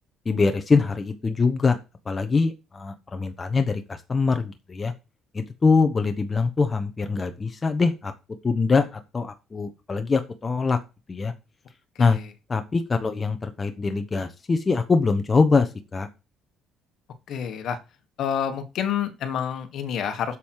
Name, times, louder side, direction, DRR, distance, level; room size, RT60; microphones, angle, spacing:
voice 1, 0.2-1.8 2.1-4.9 5.3-8.1 8.4-10.8 11.1-11.3 12.0-12.2 12.5-16.1, left 4 dB, 20° left, 8 dB, 1.0 m, -23 dB
voice 2, 17.3-17.8 18.2-20.4, left 8 dB, 55° left, 9 dB, 1.5 m, -28 dB
8.3 x 7.4 x 4.7 m, 0.28 s
cardioid pair, 150°, 0 cm